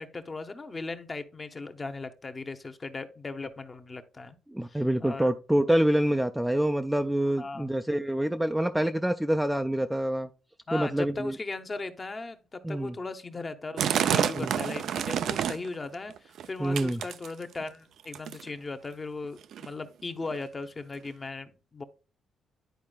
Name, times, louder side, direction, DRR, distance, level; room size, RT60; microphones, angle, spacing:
voice 1, 0.0-4.3 4.7-5.3 7.4-7.8 10.7-21.8, left 3 dB, 30° left, 0.9 m, -38 dB
voice 2, 4.5-10.3 10.7-11.4 12.6-12.9 14.4-14.5 16.6-17.0, right 1 dB, 5° right, 0.4 m, -26 dB
sound 1, 13.8-15.7 16.1-16.5 16.8-17.6 18.1-18.5 19.2-19.3 19.5-19.7 20.3-20.4 21.1-21.2, right 9 dB, 70° right, 0.4 m, -28 dB
10.5 x 4.3 x 2.3 m
cardioid pair, 90°, 0 cm